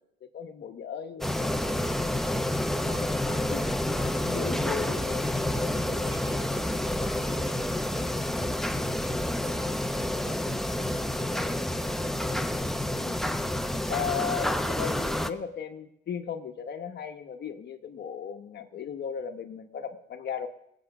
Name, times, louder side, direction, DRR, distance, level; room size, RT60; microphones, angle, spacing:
voice 1, 0.3-1.3 3.3-3.7 4.2-5.1 12.9-13.4 13.9-20.5, left 7 dB, 60° left, 5 dB, 1.2 m, -36 dB
sound 1, 1.2-15.3, left 1 dB, ahead, 0.8 m, -29 dB
voice 2, 2.9-7.6 7.9-12.0, right 4 dB, 80° right, 5 dB, 3.0 m, -50 dB
19.0 x 8.0 x 6.0 m, 0.79 s
cardioid pair, 90°, 20 cm